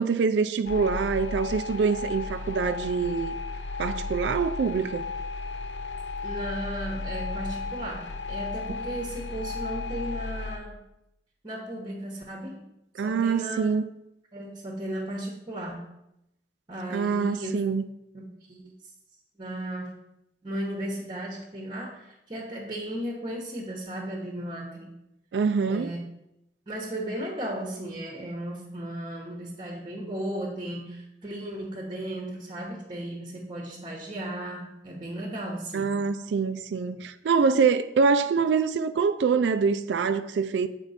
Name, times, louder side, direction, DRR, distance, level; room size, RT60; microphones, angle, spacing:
voice 1, 0.0-3.4 3.8-5.1 13.0-13.8 16.9-17.8 25.3-25.9 35.7-40.7, right 5 dB, 75° right, 0.4 m, -25 dB
sound 1, 0.6-10.6, left 3 dB, 75° left, 0.6 m, -34 dB
voice 2, 6.2-10.8 11.4-12.7 13.0-13.7 14.3-15.9 16.7-17.6 18.1-18.7 19.4-20.0 20.4-24.9 25.7-26.1 26.7-35.9, right 1 dB, 25° right, 1.0 m, -35 dB
7.3 x 4.4 x 4.1 m
head